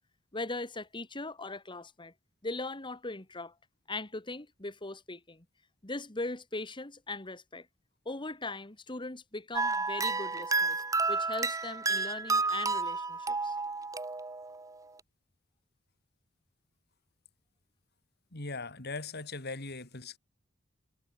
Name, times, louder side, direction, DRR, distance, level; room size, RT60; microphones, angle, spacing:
voice 1, 0.3-2.1 2.4-3.5 3.9-5.5 5.8-7.7 8.1-13.6, left 2 dB, 25° left, 1.8 m, -40 dB
sound 1, 9.5-14.7, right 3 dB, 15° right, 0.9 m, -31 dB
voice 2, 18.3-20.2, left 3 dB, 55° left, 3.6 m, -39 dB
head